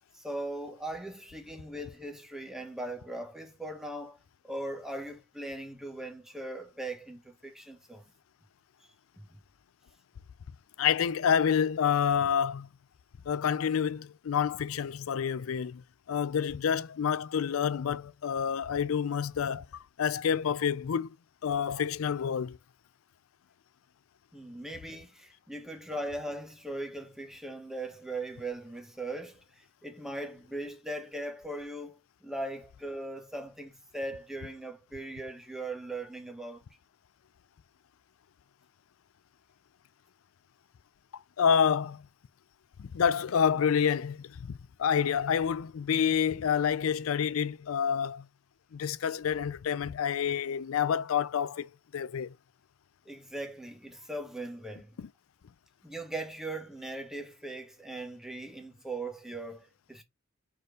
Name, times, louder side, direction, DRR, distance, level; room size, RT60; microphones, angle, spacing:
voice 1, 0.1-4.2 4.4-8.0 24.3-36.6 53.0-54.9 55.8-60.0, right 1 dB, ahead, 1.2 m, -39 dB
voice 2, 10.8-12.7 13.3-21.1 21.4-22.6 41.4-42.1 42.8-48.3 48.7-52.3 55.0-55.1, left 7 dB, 80° left, 0.4 m, -28 dB
5.0 x 4.4 x 2.4 m
head